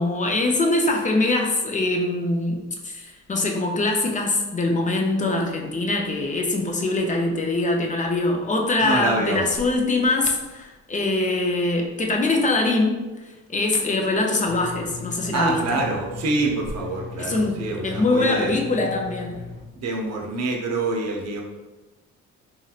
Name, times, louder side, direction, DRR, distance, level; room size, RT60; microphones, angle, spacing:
voice 1, 0.0-13.1 13.5-15.8 17.2-19.4, left 2 dB, 25° left, 1 dB, 0.5 m, -23 dB
voice 2, 8.8-9.4 15.3-18.5 19.7-21.4, right 2 dB, 55° right, 0 dB, 0.7 m, -26 dB
sound 1, 14.5-19.6, left 5 dB, 50° left, 1.2 m, -38 dB
3.1 x 2.8 x 2.4 m, 1.1 s
cardioid pair, 90°, 30 cm